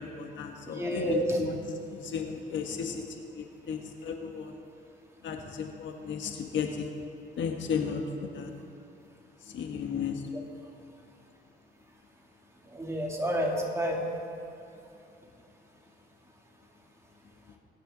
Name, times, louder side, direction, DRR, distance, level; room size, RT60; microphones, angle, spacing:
voice 1, 0.0-4.6 5.2-6.9 7.4-8.5 9.4-10.2 14.0-14.1, left 6 dB, 70° left, 3 dB, 1.4 m, -34 dB
voice 2, 0.7-1.4 12.7-14.0, equal, 15° right, -2 dB, 3.0 m, -29 dB
23.5 x 10.5 x 3.9 m, 2.8 s
cardioid pair, 90°, 20 cm